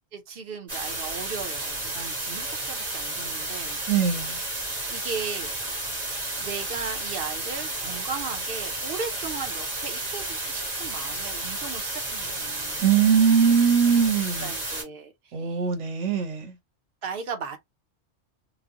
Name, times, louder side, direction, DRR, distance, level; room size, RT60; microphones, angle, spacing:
voice 1, 0.1-3.8 4.2-4.4 4.9-5.5 6.4-12.9 14.4-15.7 17.0-17.6, right 5 dB, 55° right, 0.9 m, -37 dB
sound 1, 0.7-14.8, right 2 dB, 35° right, 1.5 m, -32 dB
voice 2, 3.9-4.4 12.8-14.5 15.3-16.5, right 7 dB, 75° right, 1.2 m, -21 dB
3.0 x 2.1 x 3.6 m
omnidirectional pair, 1.3 m